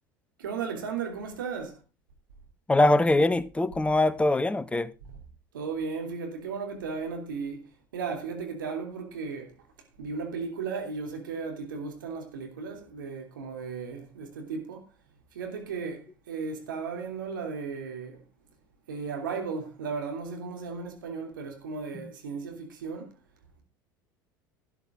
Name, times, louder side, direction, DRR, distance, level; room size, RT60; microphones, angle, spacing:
voice 1, 0.4-1.8 5.5-9.5 10.0-14.9 15.3-18.2 18.9-23.1, right 5 dB, 75° right, 3.0 m, -35 dB
voice 2, 2.7-4.9 22.0-22.1, left 2 dB, 10° left, 0.9 m, -23 dB
12.0 x 10.5 x 3.7 m
figure-of-eight pair, 75°, 11 cm